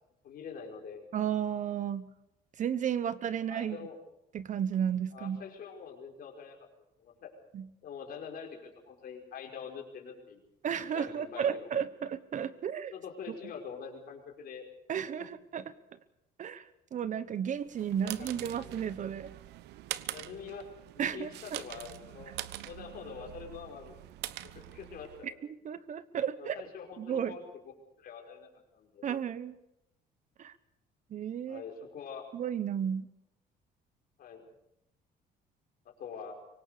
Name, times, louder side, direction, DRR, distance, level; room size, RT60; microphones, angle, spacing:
voice 1, 0.2-1.1 3.5-4.0 5.1-6.6 7.0-7.3 7.8-10.4 10.9-11.7 12.9-14.7 18.0-18.5 20.0-20.7 20.9-22.3 22.6-24.0 24.4-25.3 26.4-27.6 28.0-29.1 31.5-32.2 34.2-34.5 36.0-36.3, left 6 dB, 60° left, 2 dB, 5.4 m, -45 dB
voice 2, 1.1-2.1 2.6-3.9 4.3-5.4 7.5-7.7 10.6-12.9 14.9-15.6 16.4-16.6 16.9-19.3 21.0-21.6 25.2-25.3 25.6-26.6 27.0-27.4 29.0-29.5 30.4-30.5 31.1-31.6 32.3-33.1, right 8 dB, 50° right, 15 dB, 1.1 m, -33 dB
sound 1, 17.6-25.3, right 15 dB, 85° right, 1.0 m, -44 dB
24.5 x 18.5 x 6.8 m, 0.83 s
cardioid pair, 110°, 17 cm